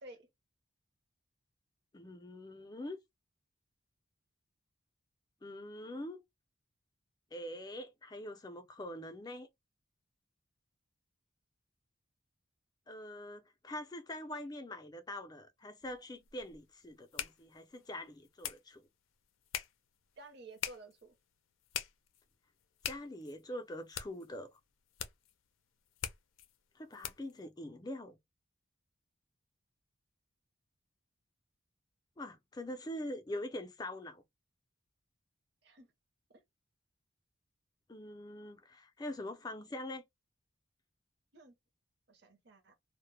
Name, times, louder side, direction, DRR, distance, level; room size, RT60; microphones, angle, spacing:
voice 1, 1.9-3.0 5.4-6.2 7.3-9.5 12.9-18.9 22.9-24.6 26.8-28.2 32.2-34.2 37.9-40.0, left 1 dB, 20° left, 0.4 m, -44 dB
sound 1, 15.8-27.4, left 10 dB, 80° left, 0.4 m, -46 dB
voice 2, 20.2-21.1 35.6-35.9 36.3-36.4 41.3-41.5 42.1-42.7, right 2 dB, 55° right, 0.7 m, -53 dB
2.1 x 2.0 x 3.1 m
head